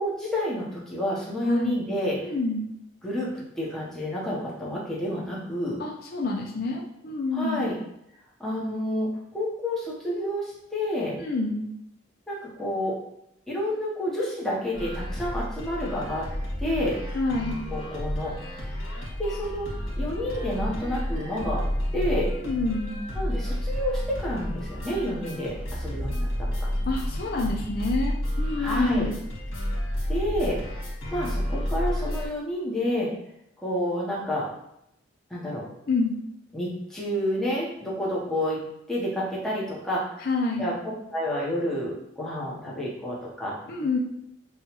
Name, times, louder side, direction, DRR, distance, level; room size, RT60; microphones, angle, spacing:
voice 1, 0.0-2.2 3.0-5.8 7.3-7.8 8.4-11.2 12.3-13.0 13.5-16.3 16.6-17.0 17.7-18.3 19.2-19.7 20.0-21.6 21.9-22.3 23.1-26.7 28.6-29.1 30.1-30.6 31.1-33.1 33.6-34.5 35.3-35.7 36.5-38.6 38.9-40.1 40.6-40.7 41.1-43.5, equal, ahead, -6 dB, 0.9 m, -29 dB
voice 2, 1.4-1.8 2.2-2.7 5.8-7.6 11.2-11.7 17.1-17.6 22.4-23.0 26.8-29.1 35.9-36.2 40.2-40.7 43.7-44.0, left 3 dB, 50° left, -1 dB, 0.5 m, -28 dB
sound 1, 14.7-32.3, equal, 80° left, 1.5 m, -31 dB
5.5 x 2.3 x 2.9 m, 0.79 s
head